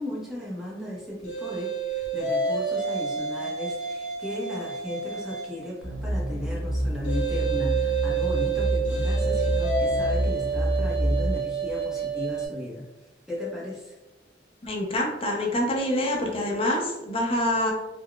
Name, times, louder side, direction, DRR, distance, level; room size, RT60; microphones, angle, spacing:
voice 1, 0.0-12.8 13.3-13.9, left 1 dB, 5° right, -6 dB, 0.8 m, -35 dB
sound 1, 1.2-5.6 7.0-12.5, right 5 dB, 85° left, 0.6 m, -29 dB
sound 2, 5.8-11.4, right 1 dB, 50° left, 1.0 m, -27 dB
voice 2, 14.6-17.7, left 1 dB, 30° left, -1 dB, 0.6 m, -26 dB
3.8 x 2.2 x 2.3 m, 1.0 s
head